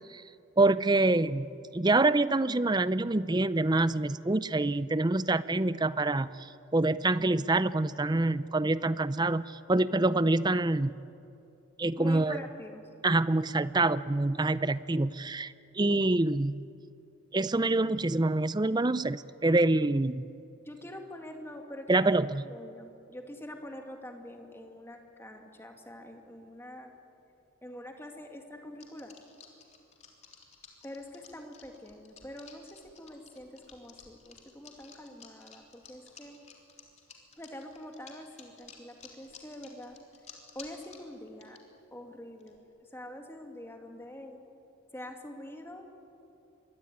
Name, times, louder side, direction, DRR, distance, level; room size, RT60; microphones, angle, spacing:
voice 1, 0.6-10.9 11.8-12.4 13.0-16.6 17.3-20.2 21.9-22.4, right 2 dB, 20° right, 16 dB, 0.5 m, -26 dB
voice 2, 12.0-12.8 20.7-22.2 22.5-26.9 27.6-29.1 30.8-36.4 37.4-40.0 40.5-41.6 41.9-42.6 42.9-44.4 44.9-45.9, left 1 dB, 10° left, 3 dB, 2.4 m, -45 dB
sound 1, 28.8-41.6 42.4-42.6, left 7 dB, 35° left, 3.5 m, -53 dB
26.5 x 22.0 x 9.8 m, 2.7 s
head